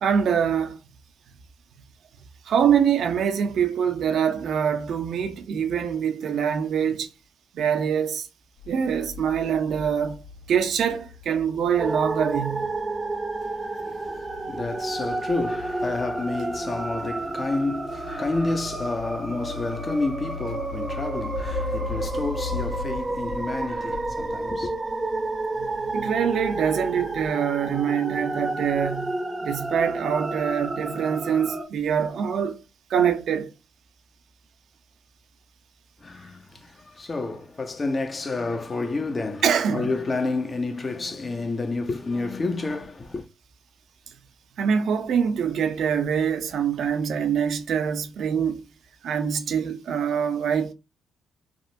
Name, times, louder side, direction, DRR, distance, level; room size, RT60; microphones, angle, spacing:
voice 1, 0.0-0.8 2.5-7.1 7.5-8.3 8.7-10.2 10.5-12.7 25.6-29.2 29.4-32.6 32.9-33.5 39.4-39.9 44.6-48.6 49.0-50.7, right 7 dB, 65° right, 0.5 m, -24 dB
sound 1, 8.6-27.3, left 6 dB, 80° left, 1.4 m, -40 dB
sound 2, 11.8-31.6, right 2 dB, 25° right, 0.6 m, -31 dB
voice 2, 13.8-24.7 36.0-39.4 39.7-43.3, left 3 dB, 35° left, 0.6 m, -30 dB
3.6 x 2.1 x 2.6 m
supercardioid pair, 60°, 0 cm